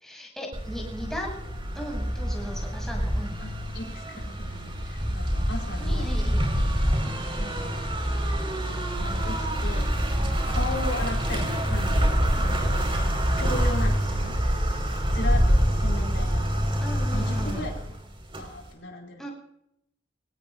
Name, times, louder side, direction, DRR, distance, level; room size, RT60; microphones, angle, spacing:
voice 1, 0.0-1.4 1.7-3.4 5.8-6.5 7.0-7.1 12.3-12.5 16.8-17.7 19.2-19.3, equal, ahead, -1 dB, 6.7 m, -37 dB
sound 1, 0.5-18.7, equal, 25° right, 5.1 m, -26 dB
voice 2, 3.4-6.1 7.4-7.6 8.3-8.7 9.0-9.9 10.2-13.0 13.4-14.4 15.1-16.5 17.1-18.0 18.4-19.3, left 1 dB, 70° left, 1 dB, 4.7 m, -37 dB
26.0 x 18.5 x 2.7 m, 0.77 s
head